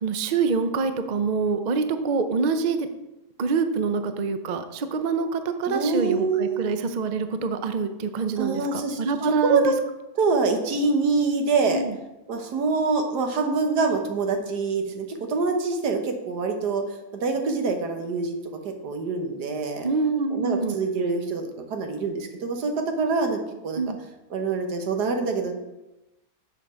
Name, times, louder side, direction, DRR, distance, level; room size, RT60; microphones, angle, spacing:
voice 1, 0.0-2.9 3.4-9.6 11.7-11.9 19.8-20.8 23.8-24.0, right 4 dB, 70° right, 9 dB, 0.4 m, -25 dB
voice 2, 5.7-6.7 8.4-9.7 10.2-11.8 12.3-19.9 20.3-23.8 24.3-25.5, right 4 dB, 90° right, 5 dB, 1.7 m, -25 dB
7.3 x 5.3 x 6.1 m, 0.97 s
omnidirectional pair, 1.7 m